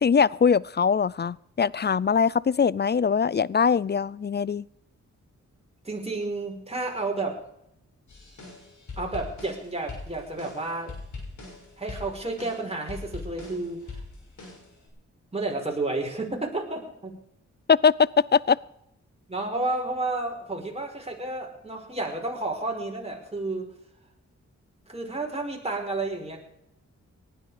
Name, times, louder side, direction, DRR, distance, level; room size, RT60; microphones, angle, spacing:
voice 1, 0.0-4.6 17.7-18.6, left 6 dB, 35° left, 23 dB, 0.5 m, -22 dB
voice 2, 5.8-7.4 9.0-11.0 11.8-14.0 15.3-17.1 19.3-23.7 24.9-26.4, right 2 dB, 20° right, 1 dB, 5.2 m, -31 dB
sound 1, 8.1-14.9, left 3 dB, 70° left, 6.4 m, -41 dB
18.5 x 12.0 x 5.0 m, 0.77 s
cardioid pair, 50°, 30 cm